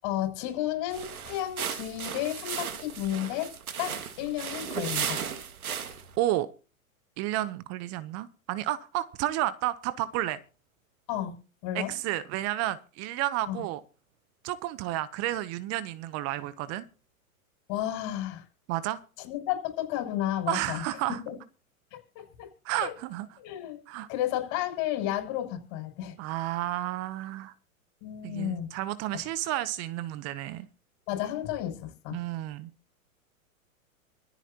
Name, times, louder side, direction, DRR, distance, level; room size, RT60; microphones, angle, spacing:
voice 1, 0.0-3.5 3.8-5.2 11.1-11.3 11.6-11.9 13.5-13.6 17.7-18.4 19.2-20.8 21.2-21.4 22.1-22.5 22.8-22.9 23.4-23.8 24.1-26.1 28.0-28.7 31.1-32.2, left 12 dB, 45° left, 6.6 m, -32 dB
sound 1, 0.9-6.2, right 7 dB, 85° right, 2.0 m, -35 dB
voice 2, 6.2-6.5 7.2-10.4 11.7-13.8 14.4-16.8 18.7-19.0 20.5-21.2 22.6-23.3 23.9-24.1 26.2-27.5 28.2-30.7 32.1-32.7, right 14 dB, 35° right, 0.8 m, -31 dB
25.0 x 9.1 x 2.9 m
hypercardioid pair, 110°, 43 cm